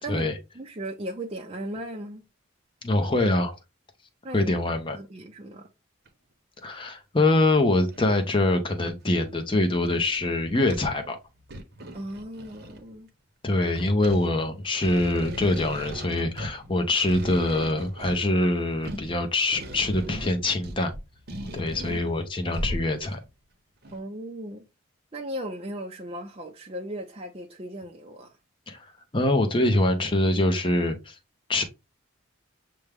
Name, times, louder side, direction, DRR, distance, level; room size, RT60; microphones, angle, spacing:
voice 1, 0.6-2.2 4.2-4.5 4.9-5.6 11.9-13.1 23.9-24.6 25.1-28.3, right 1 dB, 30° right, 0.5 m, -36 dB
voice 2, 2.8-3.6 4.3-5.0 6.6-11.2 13.4-20.9 21.5-23.2 28.7-28.8 29.1-31.2 31.5-31.6, left 2 dB, 25° left, 0.7 m, -24 dB
sound 1, 6.1-6.2 6.7-6.8 7.9-8.3 8.9-9.4 9.9-10.0 10.3-11.0 11.4-12.9 13.5-23.3 23.8-24.0, equal, 50° right, 0.8 m, -38 dB
6.2 x 2.2 x 3.4 m
head